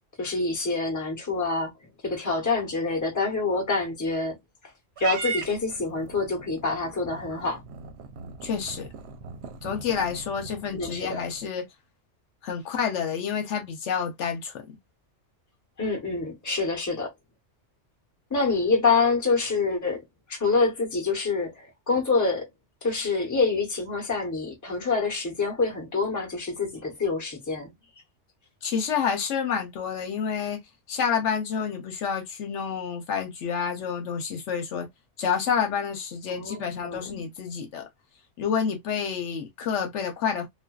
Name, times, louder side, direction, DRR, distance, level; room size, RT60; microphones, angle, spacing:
voice 1, 0.2-1.7 2.0-4.4 5.0-7.6 10.7-11.3 15.8-17.1 18.3-20.0 20.3-22.5 22.8-27.7 36.3-37.2, left 3 dB, 15° left, 0.8 m, -26 dB
Purr / Meow, 5.0-11.5, right 6 dB, 70° right, 0.8 m, -39 dB
voice 2, 8.4-8.9 9.6-11.6 12.4-14.5 28.6-30.6 30.9-34.9 35.2-37.9 38.4-40.5, left 7 dB, 75° left, 1.0 m, -29 dB
2.5 x 2.2 x 2.2 m
omnidirectional pair, 1.2 m